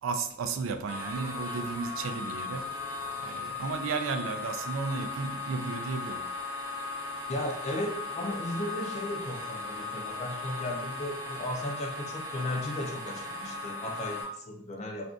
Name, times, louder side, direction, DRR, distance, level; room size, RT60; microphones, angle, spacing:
voice 1, 0.0-2.7 3.2-6.3, right 4 dB, 70° right, 0.3 m, -34 dB
sound 1, 0.9-14.2, left 3 dB, 55° right, 1.0 m, -37 dB
voice 2, 7.3-15.1, left 1 dB, 30° left, 0.4 m, -35 dB
2.4 x 2.3 x 3.6 m
head